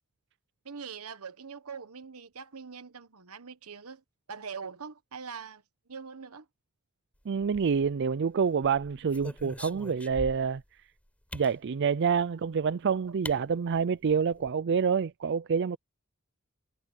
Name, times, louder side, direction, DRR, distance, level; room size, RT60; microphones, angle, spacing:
voice 1, 0.6-4.0 4.3-5.6 5.9-6.5, right 5 dB, 80° right, 1.2 m, -43 dB
voice 2, 7.3-10.8 11.3-15.8, right 6 dB, 55° right, 0.4 m, -27 dB
sound 1, 7.4-8.1 8.6-10.6 11.3-11.6 12.7-12.8 13.2-13.4 13.7-13.8 14.1-14.5, left 1 dB, 5° left, 5.1 m, -43 dB
head